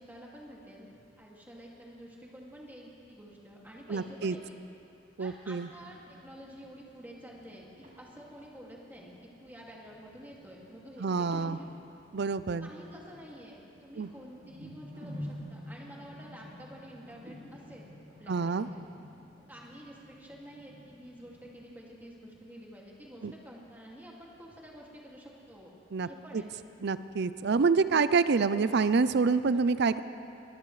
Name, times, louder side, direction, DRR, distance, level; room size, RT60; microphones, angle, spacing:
voice 1, 0.0-4.6 5.2-9.1 9.4-11.7 12.6-17.9 18.2-18.8 19.5-25.7 26.0-26.5, equal, 10° right, -3 dB, 2.3 m, -49 dB
voice 2, 3.9-4.4 5.2-5.7 11.0-11.6 12.1-12.7 14.0-14.1 18.3-18.7 23.2-23.3 25.9-26.1 26.3-26.4 26.8-30.0, right 4 dB, 60° right, 13 dB, 0.5 m, -27 dB
sound 1, 5.7-21.7, left 1 dB, 40° right, 2.8 m, -50 dB
23.0 x 17.5 x 3.3 m, 2.7 s
head